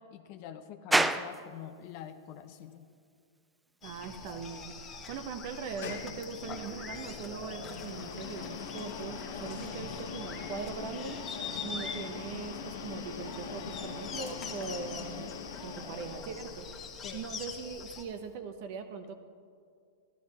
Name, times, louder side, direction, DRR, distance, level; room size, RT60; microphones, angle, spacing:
voice 1, 0.0-2.9 17.0-17.3, left 10 dB, 50° left, 8 dB, 0.6 m, -46 dB
sound 1, 0.9-18.4, right 2 dB, 5° right, 0.3 m, -41 dB
sound 2, 3.8-18.0, left 5 dB, 20° left, 1.2 m, -44 dB
voice 2, 3.8-11.2 11.6-15.3 15.6-16.7 17.1-19.1, right 6 dB, 50° right, 7 dB, 0.8 m, -41 dB
sound 3, 5.4-17.0, left 6 dB, 70° left, 1.0 m, -43 dB
13.0 x 11.5 x 4.2 m, 2.3 s
supercardioid pair, 145°, 0 cm